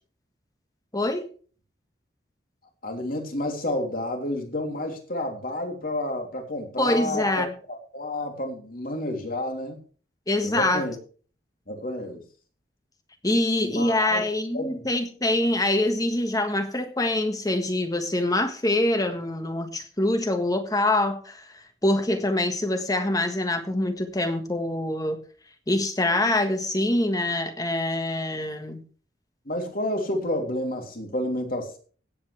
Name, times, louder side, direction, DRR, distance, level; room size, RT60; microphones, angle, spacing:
voice 1, 0.9-1.2 6.8-7.5 10.3-10.9 13.2-25.2 25.7-28.8, left 1 dB, 20° left, 7 dB, 1.5 m, -25 dB
voice 2, 2.8-7.4 7.9-9.8 10.4-10.9 11.7-12.2 13.6-14.2 14.5-14.8 29.4-31.8, left 1 dB, 50° left, 3 dB, 3.0 m, -30 dB
17.0 x 8.4 x 3.3 m, 0.40 s
head